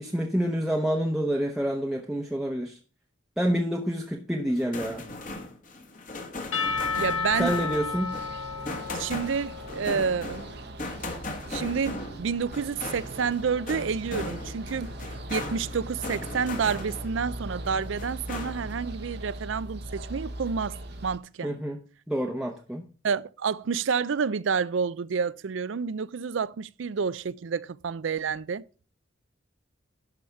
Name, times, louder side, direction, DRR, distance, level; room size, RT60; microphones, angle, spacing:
voice 1, 0.0-2.8 3.4-5.0 7.4-8.2 21.4-21.8 22.1-22.9, equal, 5° right, 0.8 m, -28 dB
sound 1, 4.5-17.3 17.6-18.8, left 2 dB, 40° left, 1.5 m, -38 dB
Percussion / Church bell, 6.5-10.4, left 5 dB, 85° left, 1.7 m, -32 dB
sound 2, 6.6-21.2, right 1 dB, 50° right, 0.9 m, -40 dB
voice 2, 6.9-7.6 8.9-10.5 11.5-14.9 15.3-21.5 23.0-28.6, right 6 dB, 70° right, 0.4 m, -29 dB
11.5 x 5.0 x 5.7 m
head